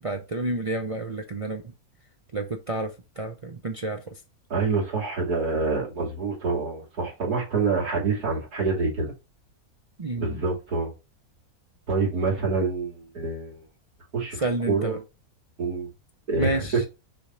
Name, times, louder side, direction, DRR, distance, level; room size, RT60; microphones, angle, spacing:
voice 1, 0.0-1.6 2.3-4.1 10.0-10.4 14.3-15.0 16.4-16.9, right 2 dB, 50° right, 0.4 m, -30 dB
voice 2, 4.5-9.1 10.1-10.9 11.9-13.6 14.1-15.0 15.6-15.9 16.3-16.9, right 4 dB, 85° right, 3.0 m, -26 dB
6.4 x 3.6 x 4.2 m
omnidirectional pair, 1.6 m